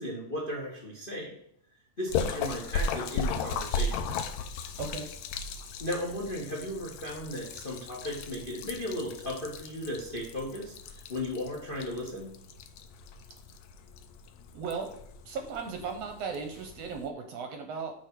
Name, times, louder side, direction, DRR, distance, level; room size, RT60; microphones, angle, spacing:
voice 1, 0.0-1.3 2.0-4.0 5.8-12.3, left 1 dB, 55° left, -1 dB, 0.6 m, -36 dB
Splash splatter, 2.1-17.1, left 4 dB, 75° left, 1.7 m, -37 dB
voice 2, 14.5-14.9 15.2-17.9, right 5 dB, 70° right, 4 dB, 1.7 m, -36 dB
8.0 x 3.5 x 6.0 m, 0.73 s
omnidirectional pair, 3.6 m